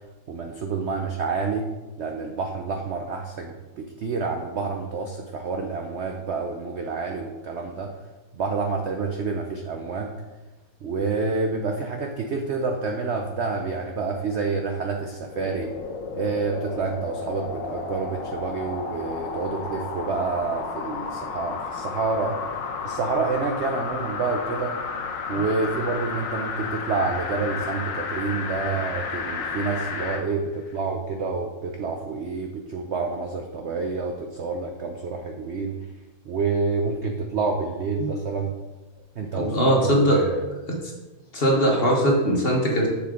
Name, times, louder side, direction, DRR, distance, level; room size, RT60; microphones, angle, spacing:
voice 1, 0.3-1.7 2.0-7.9 8.3-10.1 10.8-15.7 16.1-22.4 22.8-24.7 25.3-35.8 36.2-38.5 39.2-40.4, right 4 dB, 70° right, 3 dB, 0.6 m, -28 dB
sound 1, 15.3-30.3 30.7-30.8, left 5 dB, 75° left, 1.5 m, -32 dB
voice 2, 39.4-40.2 40.7-40.8 41.3-42.9, equal, 35° left, -1 dB, 1.3 m, -20 dB
7.1 x 7.0 x 3.7 m, 1.1 s
omnidirectional pair, 2.0 m